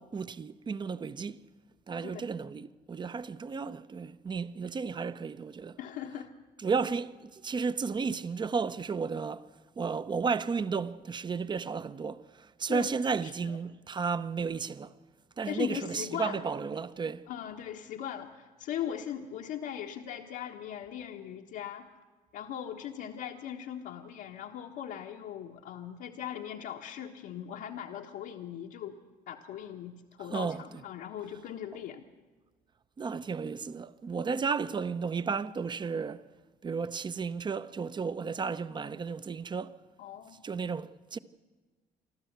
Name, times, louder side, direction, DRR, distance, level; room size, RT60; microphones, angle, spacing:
voice 1, 0.0-1.4 1.9-5.8 6.6-9.5 9.8-14.9 15.4-17.3 30.3-30.6 33.0-36.3 36.6-39.8 40.4-41.2, right 5 dB, 25° right, 0.7 m, -33 dB
voice 2, 5.8-6.3 12.7-13.5 15.5-16.4 17.3-21.9 22.3-29.0 29.3-32.1 40.0-40.4, left 10 dB, 80° left, 1.4 m, -39 dB
27.5 x 12.5 x 8.1 m
cardioid pair, 110°, 17 cm